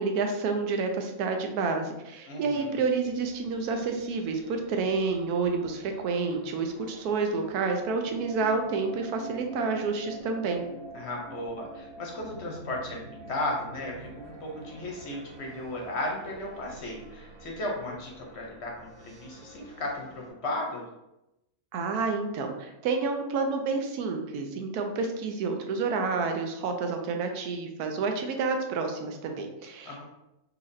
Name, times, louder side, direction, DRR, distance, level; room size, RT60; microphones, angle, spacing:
voice 1, 0.0-10.6 21.7-30.0, right 4 dB, 90° right, 4 dB, 1.1 m, -29 dB
voice 2, 2.3-2.8 10.9-20.8 29.9-30.0, left 1 dB, 55° left, -1 dB, 0.8 m, -35 dB
sound 1, 3.0-20.3, right 2 dB, 45° right, 0.9 m, -47 dB
4.1 x 2.9 x 2.6 m, 0.90 s
omnidirectional pair, 1.6 m